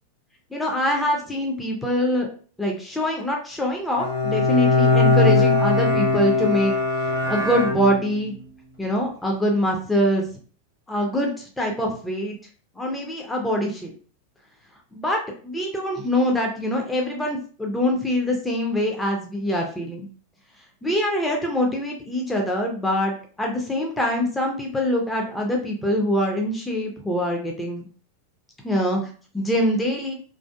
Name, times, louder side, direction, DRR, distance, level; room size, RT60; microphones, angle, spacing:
voice 1, 0.5-2.3 2.6-6.7 7.3-8.3 8.8-10.2 10.9-12.4 12.8-13.9 14.9-15.2 15.4-20.1 20.8-27.9 28.6-30.1, equal, 5° left, 0 dB, 0.5 m, -24 dB
Bowed string instrument, 4.0-8.3, left 3 dB, 65° left, 1.2 m, -20 dB
2.6 x 2.4 x 2.2 m, 0.41 s
figure-of-eight pair, 90°, 0 cm